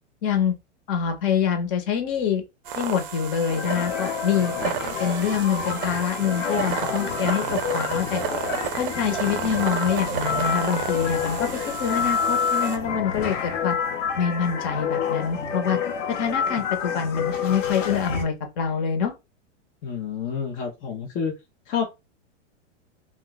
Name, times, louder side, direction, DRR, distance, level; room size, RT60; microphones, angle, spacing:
voice 1, 0.2-0.5 0.9-2.4 2.8-4.7 5.0-8.2 8.8-13.8 14.2-15.8 16.1-19.1, left 7 dB, 45° left, 0.9 m, -25 dB
sound 1, 2.7-12.8, right 8 dB, 50° right, 0.5 m, -32 dB
sound 2, 3.5-18.2, left 7 dB, 85° left, 0.8 m, -28 dB
voice 2, 19.8-21.4 21.7-21.8, left 6 dB, 25° left, 0.4 m, -28 dB
2.2 x 2.2 x 3.9 m
hypercardioid pair, 130°, 37 cm